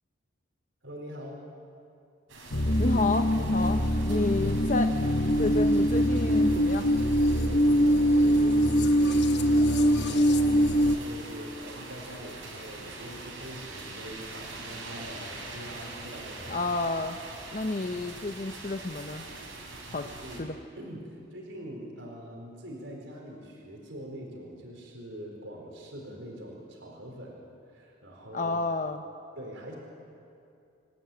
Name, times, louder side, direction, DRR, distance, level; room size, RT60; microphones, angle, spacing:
voice 1, 0.8-1.4 4.1-4.6 5.2-5.3 7.3-16.6 20.0-20.4 20.7-28.7 29.4-29.8, equal, 70° right, -1 dB, 4.5 m, -43 dB
sound 1, 2.3-20.4, right 2 dB, 90° right, 5.6 m, -43 dB
sound 2, 2.5-11.0, equal, 55° left, 1.1 m, -23 dB
voice 2, 2.8-4.9 5.4-6.9 16.5-17.2 17.5-19.3 19.9-20.1 20.4-20.5 28.3-29.0, left 2 dB, 40° left, 7 dB, 0.7 m, -30 dB
28.0 x 15.0 x 9.2 m, 2.5 s
head